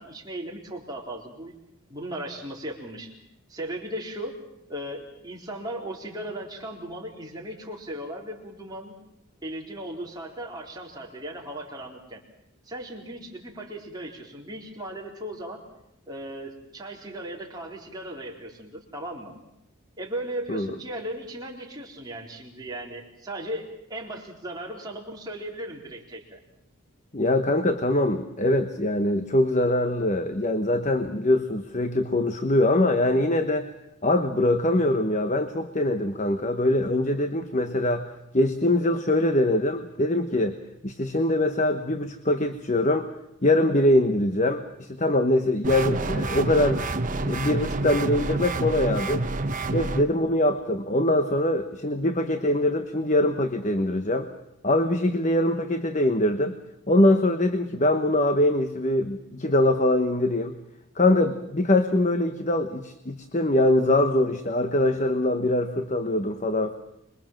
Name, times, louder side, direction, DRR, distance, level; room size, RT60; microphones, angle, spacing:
voice 1, 0.0-1.5 1.9-3.1 3.5-4.4 4.7-9.0 9.4-12.2 12.7-15.6 16.1-19.3 20.0-26.4, right 1 dB, 20° right, -2 dB, 4.1 m, -37 dB
voice 2, 27.1-33.7 34.0-43.1 43.4-46.8 47.2-49.2 49.7-54.3 54.6-56.5 56.9-60.6 61.0-66.8, left 1 dB, 35° left, 9 dB, 1.0 m, -23 dB
sound 1, 45.6-50.0, right 2 dB, 35° right, 1.1 m, -28 dB
26.0 x 22.5 x 7.5 m, 0.83 s
head